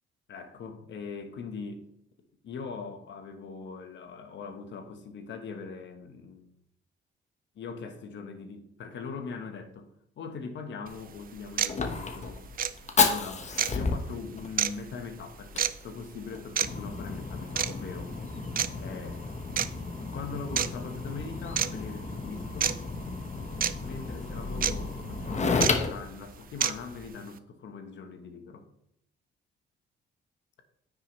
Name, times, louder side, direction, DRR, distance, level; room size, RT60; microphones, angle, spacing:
voice 1, 0.3-1.8 2.4-6.5 7.5-9.9 10.2-12.4 13.0-18.2 18.8-19.2 20.1-22.9 23.8-28.7, left 5 dB, 65° left, 1.3 m, -41 dB
Fire, 10.9-27.1, left 4 dB, 35° left, 1.1 m, -33 dB
sound 1, 10.9-11.0 11.6-11.7 12.6-12.7 13.6-13.7 14.6-14.7 15.6-15.7 16.6-16.7 17.6-17.7 18.6-18.7 19.6-19.7 20.6-20.7 21.6-21.7 22.6-22.7 23.6-23.7 24.6-24.7 25.6-25.7 26.6-26.7, right 9 dB, 45° right, 0.5 m, -26 dB
9.4 x 6.3 x 3.2 m
cardioid pair, 90°, 20 cm